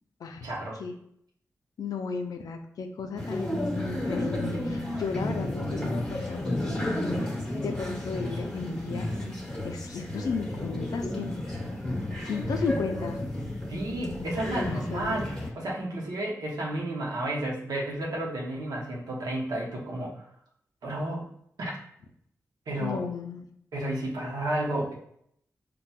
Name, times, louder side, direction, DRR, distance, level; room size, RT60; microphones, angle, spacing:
voice 1, 0.4-0.8 12.1-12.3 13.7-20.2 20.8-21.3 21.6-21.7 22.7-23.0 23.7-24.9, right 1 dB, 80° right, -2 dB, 0.8 m, -32 dB
voice 2, 1.8-7.3 7.6-9.2 9.6-11.3 12.2-13.2 14.5-15.2 22.8-23.5, left 5 dB, 80° left, 5 dB, 0.4 m, -34 dB
sound 1, 3.2-15.5, left 1 dB, 10° left, 1.1 m, -32 dB
4.0 x 2.2 x 2.2 m, 0.70 s
cardioid pair, 45°, 6 cm